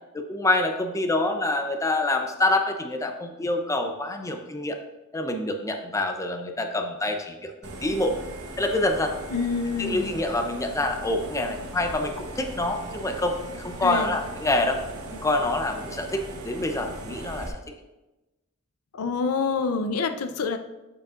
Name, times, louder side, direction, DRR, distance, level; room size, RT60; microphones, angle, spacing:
voice 1, 0.1-4.8 5.1-8.1 8.6-9.1 9.8-14.8 15.1-17.5, left 2 dB, 15° left, 5 dB, 0.5 m, -26 dB
sound 1, 7.6-17.5, right 2 dB, 90° right, 1.1 m, -39 dB
voice 2, 9.3-10.1 13.8-14.1 19.0-20.6, left 4 dB, 90° left, 9 dB, 0.5 m, -27 dB
7.6 x 7.2 x 2.4 m, 1.1 s
head